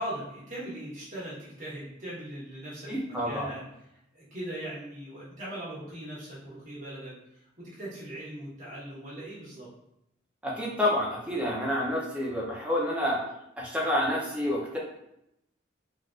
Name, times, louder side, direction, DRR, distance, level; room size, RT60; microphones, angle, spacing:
voice 1, 0.0-3.6 4.1-9.7, right 1 dB, 40° right, -7 dB, 1.2 m, -40 dB
voice 2, 2.9-3.5 10.4-13.2 13.6-14.8, left 1 dB, 5° right, -4 dB, 0.6 m, -28 dB
3.3 x 2.5 x 2.4 m, 0.81 s
head